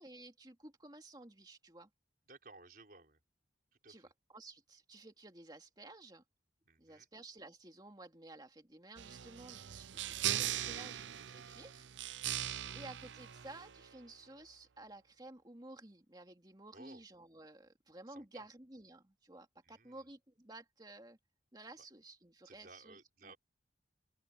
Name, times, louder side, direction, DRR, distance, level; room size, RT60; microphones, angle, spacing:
voice 1, 0.0-1.9 3.9-6.2 6.8-11.9 12.1-21.2 21.5-23.3, right 2 dB, 20° right, 2.4 m, -54 dB
voice 2, 2.3-3.2 3.7-4.1 6.6-7.1 12.4-12.8 16.7-17.0 18.1-18.5 19.6-20.0 22.4-23.4, right 3 dB, 50° right, 5.1 m, -59 dB
sound 1, 9.0-14.0, right 11 dB, 80° right, 0.6 m, -40 dB
open air
head